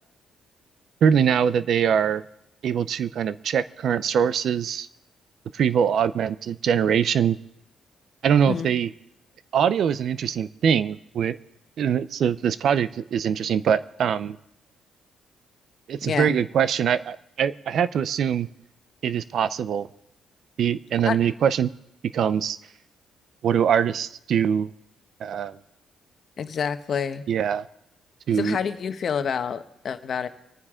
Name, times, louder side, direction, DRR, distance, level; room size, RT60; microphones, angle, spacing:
voice 1, 1.0-2.2 2.6-4.9 5.5-7.4 8.2-8.9 9.5-11.4 11.8-14.4 15.9-18.5 19.0-19.9 20.6-21.7 22.1-22.6 23.4-24.7 25.2-25.6 27.3-27.7 28.3-28.6, right 8 dB, 65° right, 15 dB, 0.6 m, -23 dB
voice 2, 16.0-16.3 21.1-21.2 26.4-27.2 28.4-30.3, left 7 dB, 55° left, 9 dB, 1.1 m, -28 dB
25.5 x 9.6 x 3.7 m, 0.80 s
cardioid pair, 90°, 0 cm